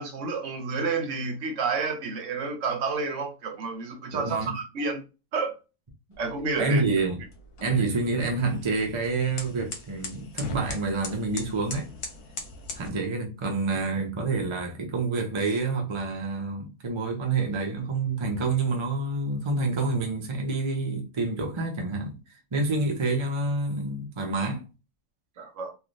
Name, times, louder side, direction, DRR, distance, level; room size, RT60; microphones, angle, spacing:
voice 1, 0.0-5.0 5.3-5.5 6.2-6.8 25.4-25.7, right 4 dB, 60° right, 0.9 m, -30 dB
voice 2, 4.1-4.5 6.6-7.2 7.6-11.9 12.7-22.2 22.5-24.6, right 3 dB, 40° right, 0.4 m, -28 dB
sound 1, 6.1-12.9, left 3 dB, 85° left, 1.3 m, -41 dB
3.2 x 2.5 x 2.5 m
omnidirectional pair, 1.6 m